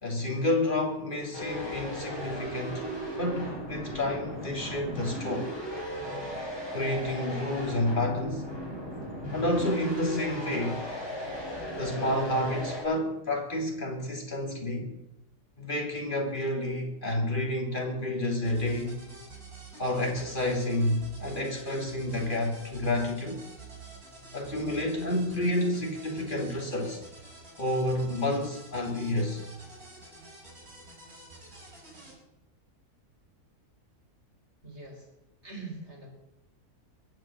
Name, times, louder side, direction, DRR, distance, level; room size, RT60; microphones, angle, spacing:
voice 1, 0.0-2.8 3.2-5.5 6.7-8.4 9.3-10.9 11.8-14.9 15.6-19.0 19.8-23.4 24.3-27.0 27.6-29.4, left 1 dB, 30° left, 0 dB, 3.3 m, -29 dB
sound 1, 1.3-12.8, equal, 15° left, 7.8 m, -36 dB
sound 2, 18.4-32.2, right 3 dB, 75° right, 5.9 m, -49 dB
voice 2, 34.6-35.1 35.4-36.1, right 3 dB, 45° right, 1 dB, 4.4 m, -42 dB
22.0 x 8.2 x 7.6 m, 0.88 s
omnidirectional pair, 1.6 m